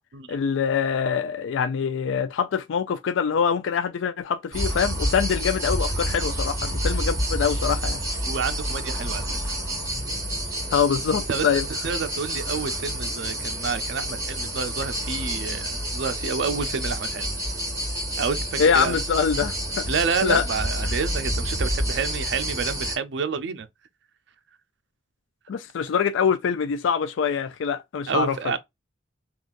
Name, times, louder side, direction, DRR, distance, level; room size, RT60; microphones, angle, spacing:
voice 1, 0.3-8.0 10.7-11.7 18.6-19.9 20.2-20.4 25.5-28.4, left 7 dB, 90° left, 0.4 m, -24 dB
sound 1, 4.5-23.0, equal, 20° right, 1.8 m, -28 dB
voice 2, 8.3-9.5 11.3-11.5 11.8-17.3 18.2-19.0 19.9-23.7 28.1-28.6, right 5 dB, 65° right, 0.5 m, -29 dB
3.8 x 2.4 x 2.4 m
head